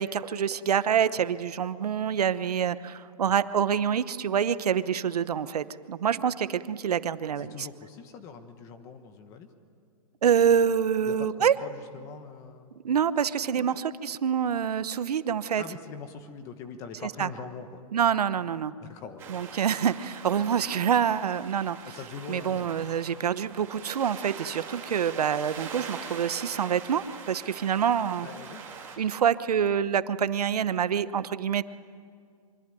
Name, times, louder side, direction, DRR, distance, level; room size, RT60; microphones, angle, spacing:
voice 1, 0.0-7.6 10.2-11.5 12.8-15.6 17.2-17.3 17.9-18.7 19.3-21.8 22.3-28.3 29.0-31.6, right 8 dB, 80° right, 14 dB, 1.0 m, -26 dB
voice 2, 7.4-9.5 11.0-12.8 13.6-13.8 15.6-17.8 18.8-19.3 21.8-23.0 28.2-28.9, left 5 dB, 15° left, 8 dB, 1.1 m, -43 dB
sound 1, 19.2-29.0, right 6 dB, 15° right, 2.8 m, -43 dB
24.0 x 23.5 x 9.2 m, 2.2 s
hypercardioid pair, 175°, 20 cm